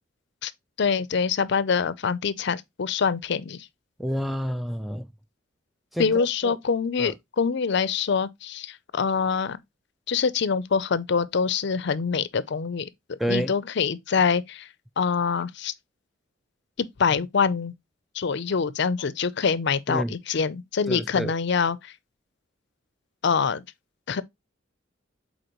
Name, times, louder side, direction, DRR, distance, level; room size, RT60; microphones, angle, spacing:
voice 1, 0.8-3.7 6.0-9.6 10.1-14.7 15.0-15.7 16.8-17.7 18.1-21.9 23.2-23.6 24.1-24.2, left 5 dB, 60° left, 0.5 m, -25 dB
voice 2, 4.0-5.1 5.9-6.6 7.0-7.1 13.2-13.5 19.9-20.2 20.9-21.3, equal, ahead, 0.3 m, -29 dB
7.9 x 4.2 x 3.0 m
head